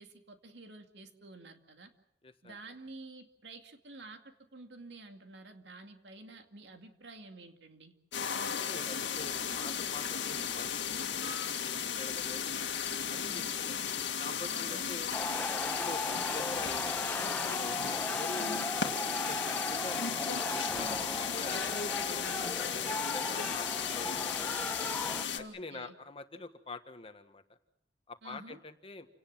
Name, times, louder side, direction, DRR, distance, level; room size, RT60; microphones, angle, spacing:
voice 1, 0.0-1.9 2.4-7.9 13.2-13.5 14.5-14.9 18.4-18.8 20.7-21.1 25.3-25.9 28.2-28.6, right 2 dB, 75° right, 5 dB, 2.3 m, -49 dB
voice 2, 2.2-2.6 8.4-12.7 13.1-13.8 14.2-15.1 15.6-20.0 20.5-21.6 21.9-22.2 22.6-22.8 23.1-24.8 25.3-27.4 28.1-29.1, left 3 dB, 30° left, 8 dB, 1.4 m, -46 dB
sound 1, 8.1-25.4, left 7 dB, 85° left, 2.0 m, -35 dB
sound 2, 15.1-25.3, left 2 dB, 10° left, 0.9 m, -37 dB
29.0 x 18.0 x 7.5 m, 0.79 s
head